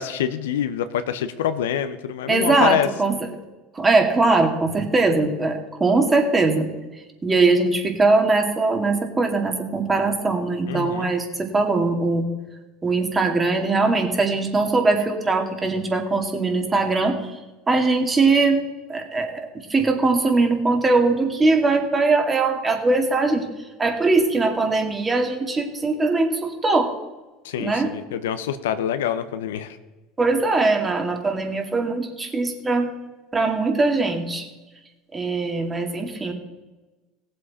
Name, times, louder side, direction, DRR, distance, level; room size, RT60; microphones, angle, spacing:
voice 1, 0.0-2.9 10.7-11.1 27.4-29.8, left 9 dB, 80° left, 11 dB, 0.8 m, -26 dB
voice 2, 2.3-3.2 3.8-6.7 7.2-12.3 12.8-17.2 17.7-18.6 18.9-23.5 23.8-26.9 27.6-27.9 30.2-32.9 33.3-34.5 35.1-36.3, right 3 dB, 25° right, 4 dB, 2.3 m, -21 dB
17.5 x 7.7 x 4.3 m, 1.2 s
hypercardioid pair, 85°, 0 cm